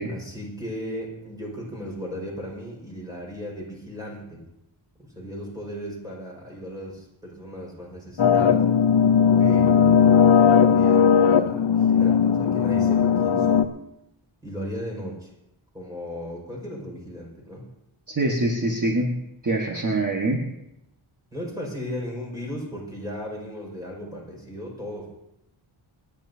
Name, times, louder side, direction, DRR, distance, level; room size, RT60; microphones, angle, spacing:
voice 1, 0.0-4.5 5.0-8.7 9.4-13.7 14.4-15.3 15.7-17.7 21.3-25.1, equal, 5° right, -3 dB, 5.1 m, -36 dB
sound 1, 8.2-13.6, left 7 dB, 60° left, 0.8 m, -18 dB
voice 2, 18.1-19.1 19.4-20.4, right 2 dB, 40° right, 0 dB, 1.5 m, -24 dB
28.5 x 10.5 x 2.8 m, 0.85 s
wide cardioid pair, 110°, 48 cm